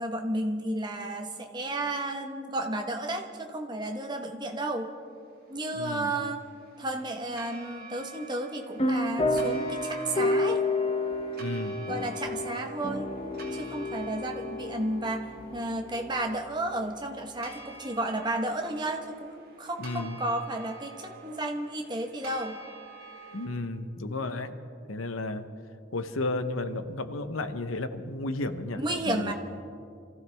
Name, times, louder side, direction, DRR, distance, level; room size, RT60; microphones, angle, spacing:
voice 1, 0.0-4.9 5.5-6.4 6.8-10.6 11.9-13.1 13.5-22.6 28.8-29.3, right 1 dB, 20° right, 3 dB, 1.2 m, -32 dB
sound 1, 5.5-23.5, right 3 dB, 50° right, 2.9 m, -49 dB
voice 2, 5.7-6.1 11.4-11.8 19.8-20.2 23.3-24.5 24.9-25.4 25.9-29.3, left 2 dB, 85° left, 10 dB, 0.9 m, -33 dB
sound 2, 8.8-16.9, left 2 dB, 30° left, 0.8 m, -31 dB
26.5 x 15.5 x 3.5 m, 2.4 s
head